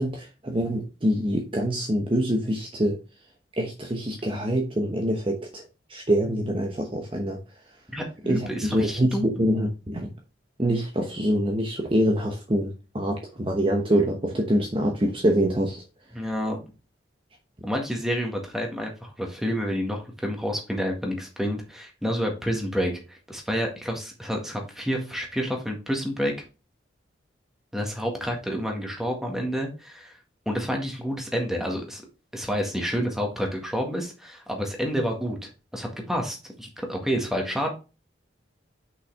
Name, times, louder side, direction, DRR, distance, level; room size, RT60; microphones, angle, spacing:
voice 1, 0.0-3.0 3.6-5.6 5.9-7.4 8.3-9.1 9.4-10.1 10.6-15.8, equal, 25° right, 1 dB, 0.9 m, -25 dB
voice 2, 7.9-9.3 16.1-16.6 17.6-26.3 27.7-30.2 30.5-32.0 32.3-37.7, equal, ahead, 1 dB, 1.8 m, -29 dB
6.4 x 5.6 x 3.5 m, 0.31 s
head